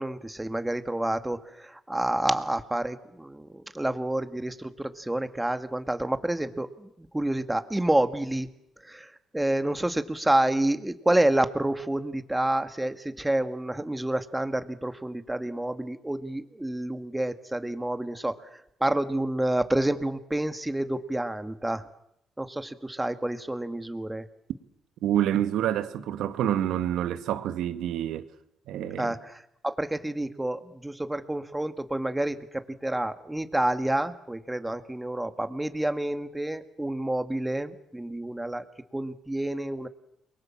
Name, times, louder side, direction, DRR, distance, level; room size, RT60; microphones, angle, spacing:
voice 1, 0.0-8.5 8.8-21.9 22.4-24.3 29.0-38.7 38.9-39.9, right 1 dB, 10° right, 2.0 m, -29 dB
voice 2, 25.0-28.3 28.7-29.1, right 11 dB, 85° right, 1.8 m, -27 dB
29.0 x 22.5 x 7.4 m
cardioid pair, 90°, 0 cm